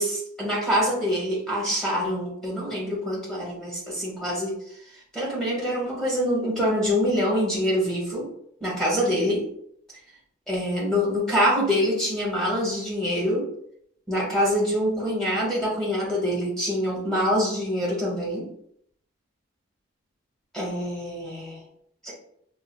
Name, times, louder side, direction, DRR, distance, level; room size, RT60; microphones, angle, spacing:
voice 1, 0.0-4.6 5.1-8.3 8.6-9.4 10.5-13.5 14.1-18.5 20.5-21.6 22.0-22.1, equal, 5° left, -6 dB, 1.2 m, -25 dB
5.5 x 2.3 x 2.2 m, 0.69 s
head